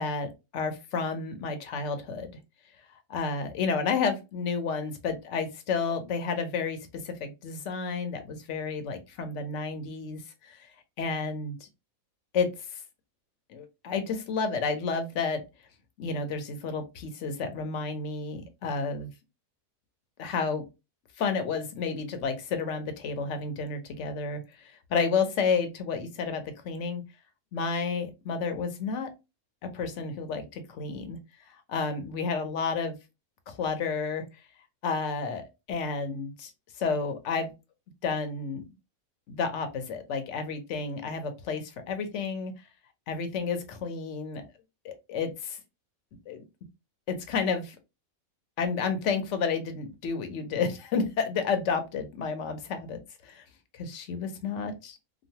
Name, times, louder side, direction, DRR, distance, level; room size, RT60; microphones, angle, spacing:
voice 1, 0.0-2.3 3.1-6.8 7.0-10.7 11.0-11.7 12.3-12.8 13.5-15.4 16.0-19.1 20.2-20.6 21.2-27.0 27.5-29.1 29.6-31.2 31.7-33.0 33.5-34.2 34.8-36.5 36.8-37.5 38.0-38.6 39.3-42.5 43.1-44.5 44.8-45.6 46.3-46.4 47.1-47.8 48.6-53.4 53.7-55.0, left 5 dB, 65° left, 8 dB, 0.9 m, -31 dB
3.0 x 2.3 x 2.7 m, 0.25 s
omnidirectional pair, 1.5 m